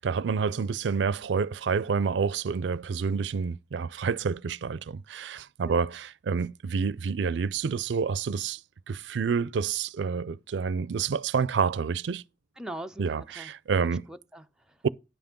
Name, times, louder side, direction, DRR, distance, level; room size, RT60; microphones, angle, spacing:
voice 1, 0.0-8.6 8.9-12.2 13.0-14.0 14.8-14.9, right 5 dB, 80° right, 0.4 m, -28 dB
voice 2, 12.6-13.5 13.8-14.8, right 1 dB, 5° right, 0.5 m, -42 dB
10.5 x 5.8 x 5.2 m
head